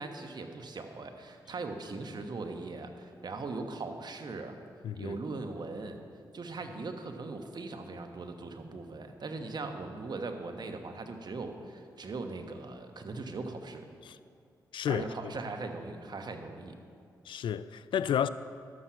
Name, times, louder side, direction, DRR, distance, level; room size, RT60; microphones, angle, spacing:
voice 1, 0.0-4.6 4.9-6.0 6.3-13.9 14.9-16.8, right 3 dB, 55° right, 1.2 m, -40 dB
voice 2, 4.8-5.2 14.1-14.2 14.7-15.0 17.3-18.3, left 9 dB, 70° left, 0.4 m, -31 dB
11.5 x 7.5 x 5.7 m
supercardioid pair, 45°, 9 cm